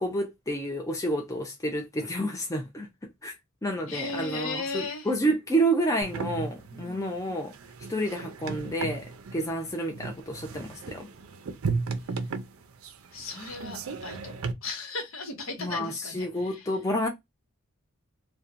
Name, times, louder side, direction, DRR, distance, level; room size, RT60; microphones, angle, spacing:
voice 1, 0.0-2.9 3.2-3.3 3.6-7.5 7.9-9.0 9.3-11.1 15.6-17.1, right 1 dB, 15° left, 0.4 m, -29 dB
voice 2, 3.9-5.1 6.7-7.1 13.1-14.3 14.6-16.7, left 3 dB, 70° left, 0.9 m, -36 dB
sound 1, 6.0-14.5, right 4 dB, 75° right, 0.5 m, -35 dB
2.8 x 2.2 x 2.4 m
head